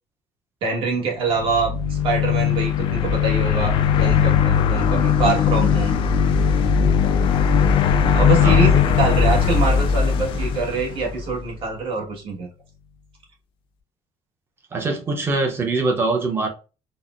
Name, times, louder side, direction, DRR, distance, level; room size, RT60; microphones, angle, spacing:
voice 1, 0.6-6.0 8.1-12.5, right 4 dB, 50° right, 1.2 m, -25 dB
sound 1, 1.3-11.5, left 7 dB, 50° left, 0.4 m, -19 dB
voice 2, 8.4-8.8 14.7-16.5, right 3 dB, 20° right, 0.7 m, -23 dB
4.0 x 2.0 x 2.4 m
cardioid pair, 170°, 11 cm